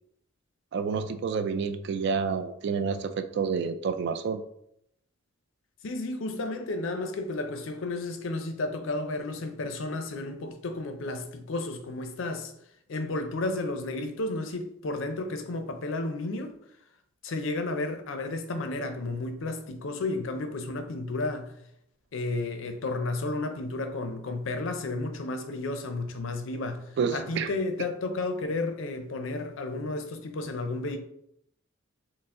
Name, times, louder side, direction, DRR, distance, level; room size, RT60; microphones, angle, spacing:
voice 1, 0.7-4.4 27.0-27.5, right 5 dB, 60° right, 0.3 m, -29 dB
voice 2, 5.8-12.5 12.9-16.6 17.2-21.5 22.1-31.0, left 2 dB, 75° left, 0.5 m, -32 dB
4.5 x 2.0 x 3.6 m
head